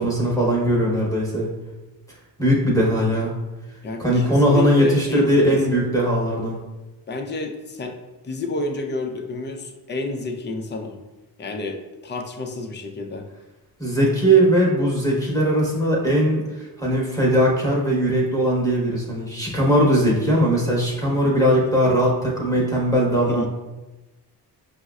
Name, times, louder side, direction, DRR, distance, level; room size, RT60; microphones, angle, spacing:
voice 1, 0.0-1.5 2.4-3.3 4.0-6.6 13.8-23.5, right 1 dB, 10° left, -5 dB, 1.0 m, -19 dB
voice 2, 3.8-5.8 7.1-8.0 8.2-11.0 11.4-13.3 23.3-23.5, left 3 dB, 25° left, 3 dB, 0.5 m, -30 dB
5.2 x 2.1 x 2.3 m, 1.1 s
cardioid pair, 60°, 42 cm